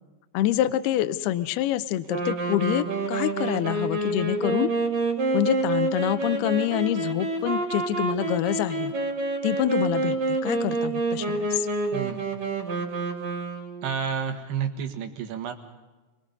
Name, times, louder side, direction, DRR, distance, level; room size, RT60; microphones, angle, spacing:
voice 1, 0.3-4.7 5.3-8.9 9.4-11.7, left 13 dB, 75° left, 12 dB, 2.5 m, -26 dB
sound 1, 2.1-13.9, right 2 dB, 55° right, 4.1 m, -28 dB
voice 2, 11.9-12.2 13.8-15.5, right 7 dB, 70° right, 5 dB, 3.6 m, -30 dB
29.5 x 21.0 x 5.4 m, 1.2 s
omnidirectional pair, 5.0 m